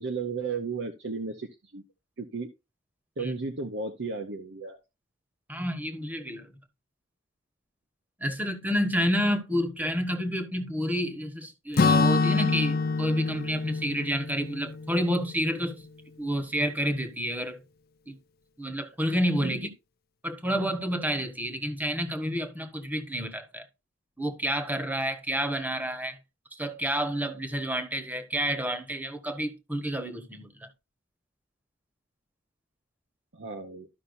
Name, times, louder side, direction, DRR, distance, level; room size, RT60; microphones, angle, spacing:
voice 1, 0.0-1.8 2.2-2.5 3.2-4.8 19.4-19.7 33.3-33.9, right 4 dB, 65° right, 0.8 m, -34 dB
voice 2, 5.5-6.5 8.2-15.8 16.2-17.6 18.1-18.2 18.6-19.7 20.2-23.6 24.2-26.2 26.5-30.7, equal, 10° right, 1.2 m, -29 dB
Acoustic guitar / Strum, 11.8-15.7, left 4 dB, 55° left, 0.6 m, -26 dB
13.0 x 5.6 x 2.6 m
head